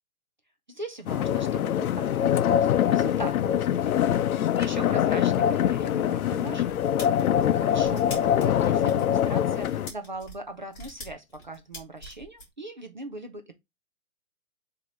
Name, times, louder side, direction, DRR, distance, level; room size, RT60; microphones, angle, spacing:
voice 1, 0.7-6.9 7.5-13.6, right 2 dB, 35° right, 0.4 m, -40 dB
sound 1, 1.1-9.9, left 10 dB, 85° left, 0.6 m, -24 dB
sound 2, 6.3-12.5, left 1 dB, 15° left, 1.9 m, -44 dB
3.9 x 2.9 x 4.6 m
hypercardioid pair, 175°, 42 cm